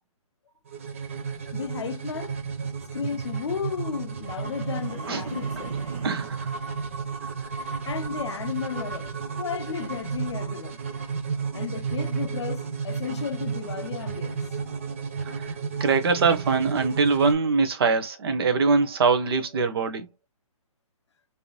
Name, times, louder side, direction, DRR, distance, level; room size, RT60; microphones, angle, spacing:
sound 1, 0.7-17.3, right 5 dB, 25° right, 0.4 m, -32 dB
voice 1, 1.5-5.7 7.6-9.1 9.4-10.8 11.5-14.4, left 7 dB, 50° left, 0.5 m, -34 dB
sound 2, 4.4-6.5, right 4 dB, 60° right, 1.3 m, -41 dB
voice 2, 6.0-6.6 7.2-7.5 14.8-14.9 15.2-20.1, right 4 dB, 40° right, 0.8 m, -23 dB
3.4 x 2.7 x 2.9 m
hypercardioid pair, 165°, 19 cm